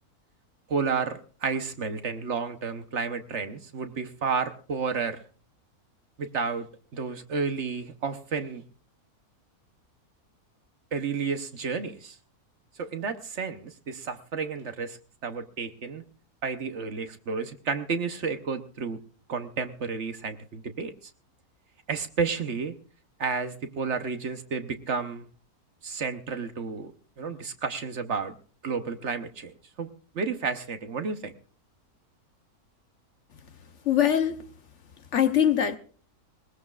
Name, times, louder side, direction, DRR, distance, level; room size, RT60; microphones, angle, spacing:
voice 1, 0.7-5.2 6.2-8.6 10.9-12.2 12.8-16.0 16.4-19.0 19.3-21.1 21.9-22.7 23.2-25.3 25.8-26.9 27.2-28.3 28.6-29.9 30.1-31.3, right 5 dB, 55° right, 9 dB, 1.1 m, -31 dB
voice 2, 33.9-34.4 35.1-35.8, left 9 dB, 55° left, 9 dB, 1.1 m, -22 dB
21.0 x 19.5 x 2.4 m, 0.40 s
omnidirectional pair, 1.6 m